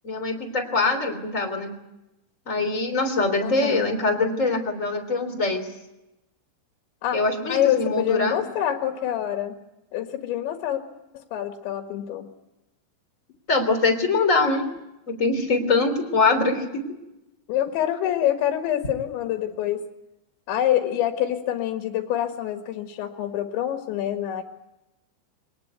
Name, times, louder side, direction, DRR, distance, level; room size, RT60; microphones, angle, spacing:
voice 1, 0.0-1.7 2.5-5.7 7.1-8.4 13.5-14.7 15.1-16.8, left 3 dB, 20° left, 5 dB, 3.0 m, -23 dB
voice 2, 3.4-3.9 7.0-7.2 7.5-9.6 9.9-10.8 11.1-12.3 17.5-19.8 20.5-24.4, left 11 dB, 75° left, 5 dB, 3.9 m, -26 dB
24.5 x 19.5 x 9.4 m, 0.93 s
omnidirectional pair, 5.3 m